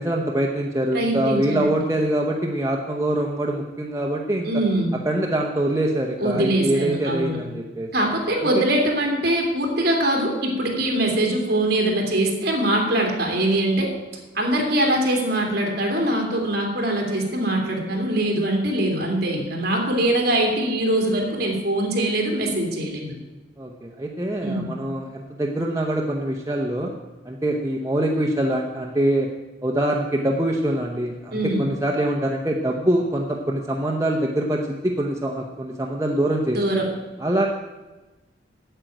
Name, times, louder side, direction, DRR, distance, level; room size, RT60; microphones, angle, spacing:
voice 1, 0.0-4.5 5.0-7.9 8.6-8.7 23.6-26.9 27.2-29.3 29.6-36.6 37.2-37.5, right 1 dB, 15° right, 0 dB, 0.8 m, -24 dB
voice 2, 0.9-1.8 4.4-4.9 6.2-7.4 7.9-13.9 14.3-23.1 24.4-24.7 31.3-31.7 36.5-36.9, right 1 dB, 50° right, 1 dB, 2.8 m, -22 dB
9.0 x 7.5 x 9.1 m, 1.1 s
head